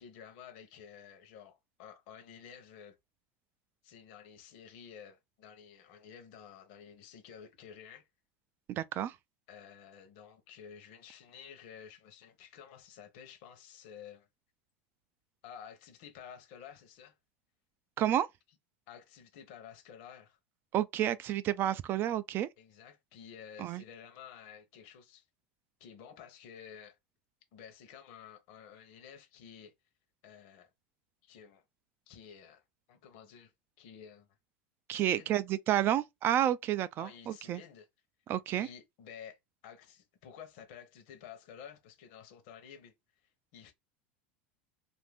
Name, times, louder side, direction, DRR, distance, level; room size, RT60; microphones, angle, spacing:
voice 1, 0.0-3.0 3.8-8.1 9.5-14.3 15.4-17.2 18.9-20.4 22.6-25.3 25.8-27.0 27.5-29.7 30.2-30.7 31.2-31.6 32.1-32.6 32.9-33.5 33.8-34.3 34.9-35.4 37.0-37.9 38.6-42.9 43.5-43.7, left 8 dB, 65° left, 0.8 m, -52 dB
voice 2, 8.7-9.2 18.0-18.3 20.7-22.5 23.6-23.8 34.9-37.6 38.3-38.7, right 11 dB, 40° right, 0.3 m, -30 dB
2.6 x 2.5 x 3.4 m
supercardioid pair, 130°, 6 cm